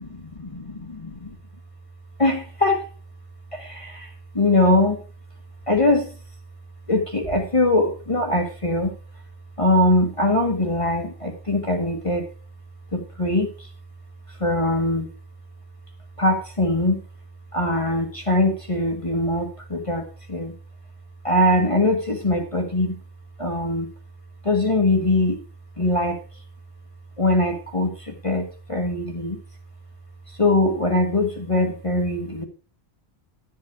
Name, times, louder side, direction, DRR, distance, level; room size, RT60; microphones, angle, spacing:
voice 1, 0.6-1.3 2.2-2.8 3.5-4.1 4.3-5.0 5.7-6.1 6.9-8.9 9.6-12.3 12.9-13.5 14.4-15.1 16.2-17.0 17.5-20.5 21.2-23.0 23.4-23.9 24.4-25.4 25.8-26.2 27.2-29.4 30.4-32.4, left 2 dB, 30° left, 2 dB, 1.6 m, -22 dB
11.5 x 7.8 x 4.8 m, 0.36 s
omnidirectional pair, 1.1 m